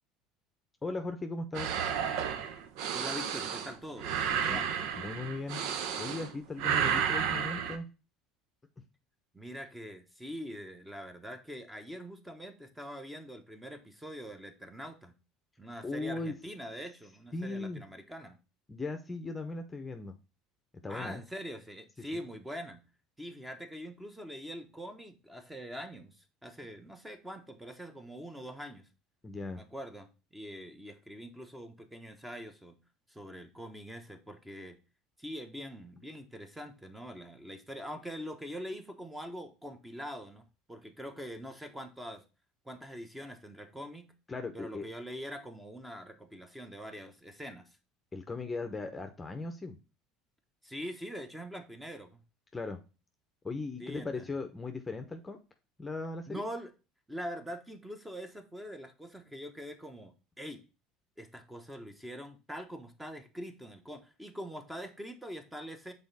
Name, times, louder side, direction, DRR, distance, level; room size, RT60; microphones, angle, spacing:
voice 1, 0.8-1.8 4.5-4.6 5.0-5.6 6.0-7.9 15.8-16.3 17.3-17.8 18.7-20.1 20.8-21.2 29.2-29.6 44.3-44.8 48.1-49.8 52.5-52.8 53.4-55.4 55.8-56.4, left 3 dB, 15° left, 7 dB, 0.8 m, -38 dB
sound 1, 1.5-6.3 6.6-7.8, right 8 dB, 75° right, 0.9 m, -32 dB
voice 2, 2.9-4.7 9.3-15.2 15.6-18.4 20.9-22.9 23.2-28.9 29.5-32.8 33.1-34.8 35.2-42.2 42.6-44.1 44.5-47.7 50.6-52.2 53.8-54.3 56.3-56.7 57.1-60.6 61.2-65.9, equal, 5° right, 7 dB, 1.1 m, -43 dB
6.2 x 4.0 x 4.1 m, 0.31 s
supercardioid pair, 110°, 0 cm